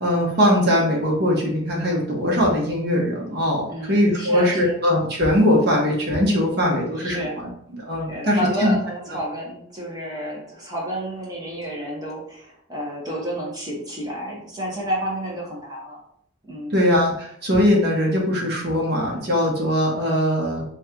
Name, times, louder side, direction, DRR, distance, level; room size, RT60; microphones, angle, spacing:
voice 1, 0.0-7.5 7.8-8.7 16.7-20.6, equal, 55° right, -2 dB, 1.1 m, -21 dB
voice 2, 3.7-4.8 6.9-7.3 8.1-16.0 16.4-16.7, right 1 dB, 20° right, -4 dB, 1.3 m, -30 dB
3.2 x 2.5 x 4.4 m, 0.67 s
head